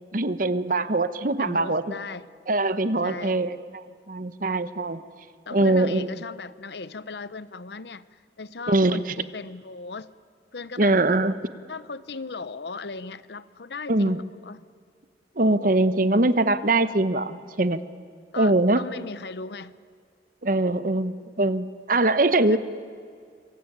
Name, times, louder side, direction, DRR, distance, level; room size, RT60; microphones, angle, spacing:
voice 1, 0.1-1.8 2.5-5.0 5.5-6.1 8.7-9.0 10.8-11.5 13.9-14.2 15.4-17.8 18.4-18.8 20.4-22.6, right 2 dB, 50° right, 13 dB, 1.0 m, -22 dB
voice 2, 1.4-2.3 3.0-3.4 5.5-10.1 10.5-11.0 11.7-14.6 18.3-19.8 22.5-22.6, left 4 dB, 65° left, 16 dB, 0.8 m, -37 dB
26.0 x 23.5 x 9.2 m, 2.1 s
head